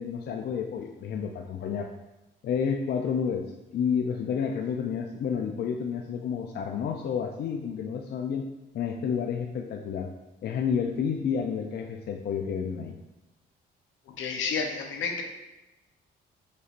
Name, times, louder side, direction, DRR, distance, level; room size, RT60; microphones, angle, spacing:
voice 1, 0.0-1.9 2.4-3.5 3.7-8.4 8.7-10.1 10.4-13.0, left 7 dB, 55° left, 3 dB, 0.4 m, -30 dB
voice 2, 14.1-15.2, left 5 dB, 75° left, 3 dB, 0.8 m, -30 dB
5.1 x 4.1 x 2.5 m, 0.98 s
cardioid pair, 90°, 20 cm